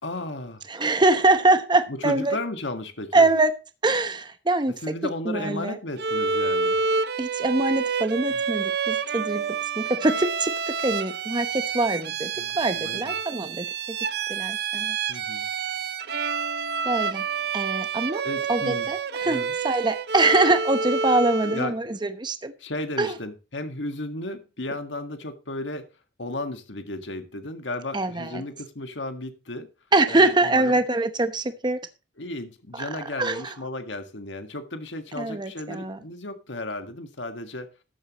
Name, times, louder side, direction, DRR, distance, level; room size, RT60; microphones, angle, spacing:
voice 1, 0.0-0.6 1.9-3.3 4.8-6.8 8.3-8.4 12.3-13.1 15.1-15.5 18.2-18.9 19.2-19.5 21.4-21.8 22.6-25.8 26.2-29.7 30.1-30.8 32.2-37.7, left 2 dB, 85° left, 7 dB, 1.7 m, -34 dB
voice 2, 0.7-2.4 3.1-3.5 3.8-4.9 5.2-5.8 7.2-9.5 9.8-10.5 10.8-14.0 14.3-15.0 16.8-17.3 17.5-18.2 18.5-22.5 23.0-23.2 27.9-28.4 29.9-31.8 32.7-32.9 33.2-33.5 35.2-36.0, right 2 dB, 25° right, 9 dB, 1.0 m, -24 dB
Bowed string instrument, 6.0-21.8, right 5 dB, 60° right, 0.7 m, -28 dB
13.5 x 11.0 x 3.0 m, 0.30 s
head